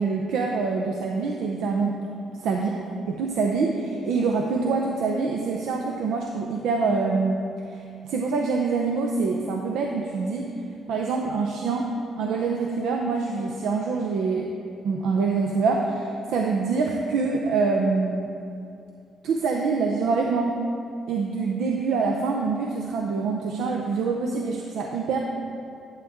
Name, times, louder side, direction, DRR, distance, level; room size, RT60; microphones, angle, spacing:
voice 1, 0.0-2.0 2.4-2.7 3.1-7.4 7.7-10.5 10.9-14.5 14.8-18.3 19.2-20.5 21.1-25.2, right 4 dB, 85° right, 1 dB, 0.6 m, -25 dB
11.5 x 7.2 x 3.6 m, 2.5 s
cardioid pair, 90°, 0 cm